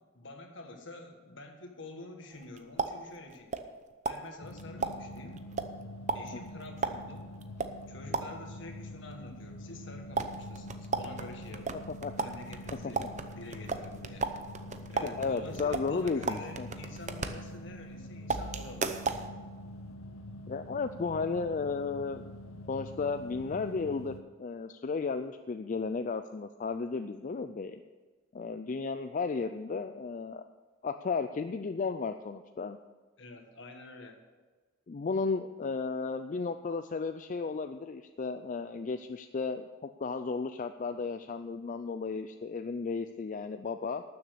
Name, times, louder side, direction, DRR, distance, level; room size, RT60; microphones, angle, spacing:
voice 1, 0.0-3.5 4.0-5.4 6.1-7.3 7.9-11.8 12.2-14.3 14.9-19.0 33.2-34.2, left 2 dB, 65° left, 4 dB, 1.7 m, -48 dB
sound 1, 2.3-3.8 4.1-8.6 10.1-17.9 18.3-19.3, right 4 dB, 35° right, 0.7 m, -36 dB
sound 2, 4.4-24.2, left 1 dB, 85° left, 0.8 m, -45 dB
voice 2, 15.0-16.7 20.5-22.4 22.7-27.8 28.3-30.4 30.8-32.8 34.9-44.0, left 4 dB, 40° left, 9 dB, 0.4 m, -34 dB
12.5 x 7.1 x 6.8 m, 1.3 s
head